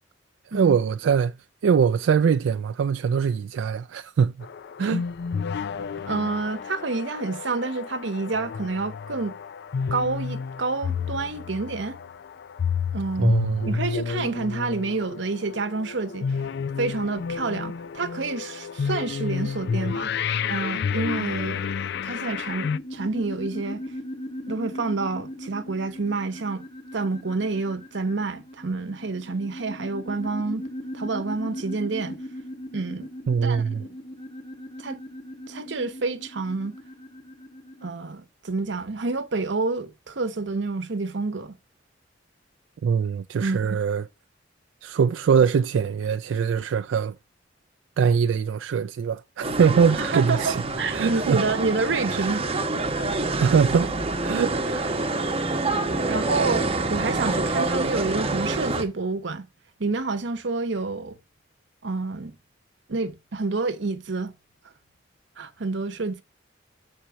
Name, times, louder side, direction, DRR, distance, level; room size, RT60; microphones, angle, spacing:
voice 1, 0.5-1.3 1.6-4.5 4.8-5.0 13.2-13.8 33.3-33.8 42.8-44.1 44.8-47.2 48.0-50.6 50.9-51.4 52.1-52.3 53.4-53.9 54.2-54.9, right 6 dB, 85° right, 0.3 m, -22 dB
sound 1, 4.4-22.8, left 6 dB, 60° left, 0.4 m, -30 dB
voice 2, 6.1-9.3 9.9-12.0 12.9-13.4 13.7-16.4 16.8-20.1 20.5-23.8 24.5-26.7 26.9-30.6 30.9-32.2 32.7-33.1 33.4-33.6 34.8-35.0 35.5-36.7 37.8-41.6 43.4-43.8 50.0-52.4 52.9-53.0 56.0-59.5 59.8-61.2 61.8-62.4 62.9-64.3 65.4-66.2, right 3 dB, 70° right, 0.9 m, -28 dB
sound 2, 21.9-37.9, equal, 30° left, 2.0 m, -39 dB
sound 3, 49.4-58.8, right 2 dB, 30° right, 0.9 m, -27 dB
6.9 x 4.4 x 6.1 m
head